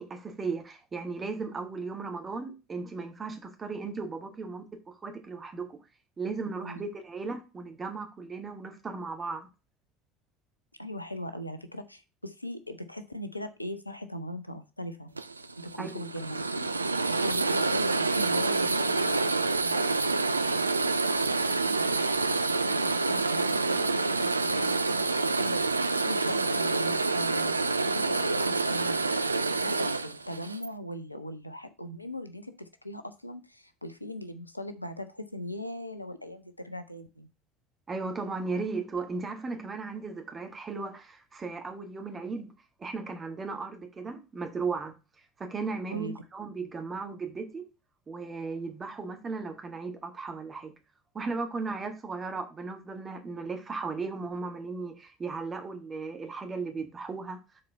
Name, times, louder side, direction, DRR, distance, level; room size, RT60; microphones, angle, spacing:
voice 1, 0.0-5.8 6.2-9.5 15.8-16.0 37.9-42.5 42.8-44.9 45.4-47.7 48.1-50.7 51.1-57.4, right 4 dB, 25° right, 1.7 m, -36 dB
voice 2, 10.8-15.1 15.6-16.7 17.1-20.9 21.3-27.5 27.8-29.0 29.6-37.3 45.9-46.2, equal, 90° left, 0.6 m, -39 dB
sound 1, 15.2-30.7, right 3 dB, 85° right, 0.3 m, -27 dB
6.7 x 4.2 x 5.4 m
figure-of-eight pair, 65°, 0 cm